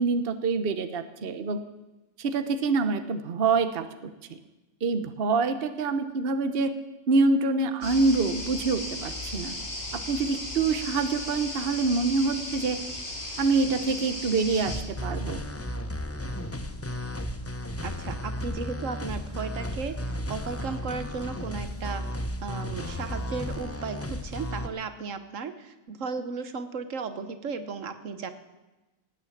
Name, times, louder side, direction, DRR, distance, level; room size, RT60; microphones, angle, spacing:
voice 1, 0.0-1.6 2.2-4.1 4.8-6.7 7.1-9.5 9.9-12.8 13.4-15.4, right 4 dB, 50° right, 10 dB, 1.1 m, -26 dB
sound 1, 7.8-14.8, left 1 dB, 50° left, 3.2 m, -36 dB
sound 2, 14.7-24.7, left 1 dB, 15° left, 0.5 m, -34 dB
voice 2, 17.8-20.0 20.3-28.3, right 5 dB, 75° right, 10 dB, 1.4 m, -35 dB
17.5 x 9.1 x 8.5 m, 1.1 s
omnidirectional pair, 1.4 m